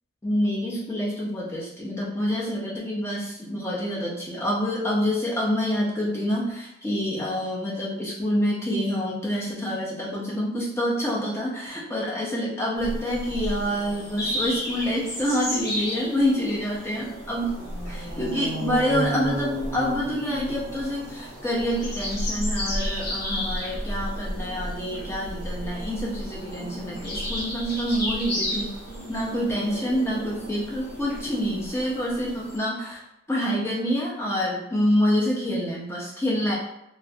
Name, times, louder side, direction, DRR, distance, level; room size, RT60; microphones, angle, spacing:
voice 1, 0.2-17.5 17.9-28.7 29.1-33.0 33.3-36.6, equal, 10° left, -4 dB, 0.4 m, -27 dB
sound 1, 12.8-32.6, equal, 50° left, 0.8 m, -32 dB
2.4 x 2.0 x 2.6 m, 0.86 s
head